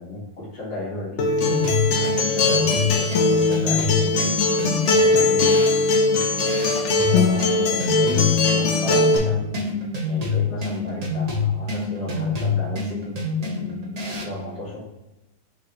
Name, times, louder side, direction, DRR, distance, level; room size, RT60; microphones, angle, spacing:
voice 1, 0.0-5.6 7.1-9.8 10.0-14.8, left 2 dB, 40° left, -12 dB, 2.0 m, -34 dB
Acoustic guitar, 1.2-9.2, left 3 dB, 60° left, 0.7 m, -20 dB
sound 1, 1.4-14.4, left 4 dB, 50° right, 0.4 m, -27 dB
5.3 x 3.2 x 3.0 m, 0.96 s
omnidirectional pair, 1.8 m